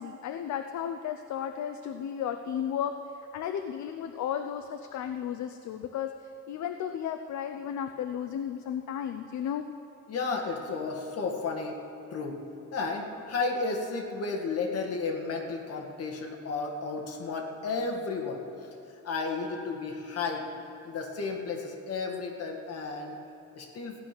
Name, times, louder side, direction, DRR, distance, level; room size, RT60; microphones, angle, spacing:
voice 1, 0.0-2.9 3.3-6.1 6.5-9.6, left 9 dB, 70° left, 7 dB, 0.6 m, -34 dB
voice 2, 10.1-11.8 12.1-12.4 12.7-18.4 19.0-20.5 20.8-23.2 23.5-23.9, left 4 dB, 50° left, 1 dB, 1.8 m, -33 dB
16.0 x 10.5 x 6.0 m, 2.9 s
cardioid pair, 165°, 30 cm